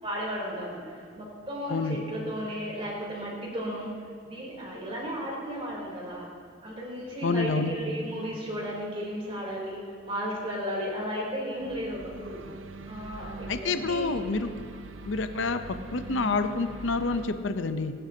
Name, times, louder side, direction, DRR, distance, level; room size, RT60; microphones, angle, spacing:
voice 1, 0.0-0.8 1.1-3.9 4.2-6.3 6.6-12.4 12.8-14.1, equal, 30° right, -4 dB, 3.5 m, -34 dB
voice 2, 7.2-7.7 13.5-14.5 15.1-15.6 15.9-17.9, left 3 dB, 75° left, 9 dB, 0.7 m, -28 dB
sound 1, 11.6-17.3, right 3 dB, 80° right, 0.6 m, -43 dB
21.0 x 11.0 x 2.8 m, 2.3 s
head